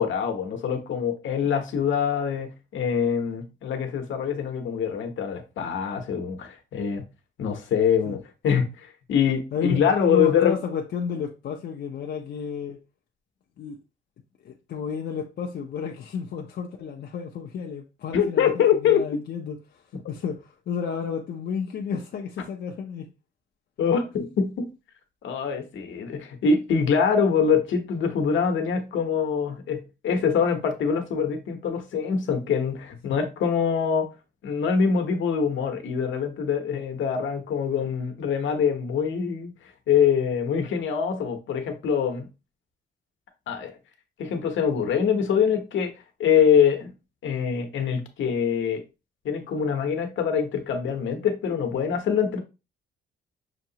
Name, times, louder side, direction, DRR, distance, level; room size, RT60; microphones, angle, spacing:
voice 1, 0.0-7.0 7.4-10.6 18.1-19.2 23.8-24.7 25.2-34.1 34.4-39.5 39.9-42.3 43.5-43.7 44.2-45.9 46.2-46.9 47.2-48.8 49.2-52.4, left 7 dB, 75° left, 0.9 m, -24 dB
voice 2, 9.5-12.8 13.6-13.8 14.4-19.8 20.1-23.1 33.0-33.2, left 6 dB, 55° left, 0.6 m, -32 dB
6.0 x 2.8 x 2.8 m
wide cardioid pair, 165°, 20 cm